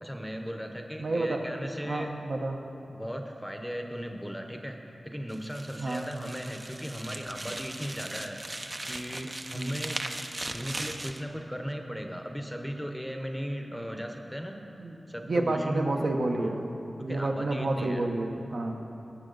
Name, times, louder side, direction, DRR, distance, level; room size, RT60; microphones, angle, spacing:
voice 1, 0.0-2.1 2.9-4.8 5.0-10.0 10.5-14.6 15.1-15.9 16.4-16.7 17.0-18.1 18.6-18.7, equal, ahead, 3 dB, 0.8 m, -37 dB
voice 2, 1.0-1.4 1.9-2.6 5.8-6.1 9.5-9.8 14.8-14.9 15.3-16.7 17.0-18.7, right 2 dB, 65° right, 2 dB, 0.9 m, -29 dB
sound 1, 5.3-11.2, right 2 dB, 30° right, 0.5 m, -38 dB
18.5 x 7.0 x 3.9 m, 3.0 s
wide cardioid pair, 100°, 0 cm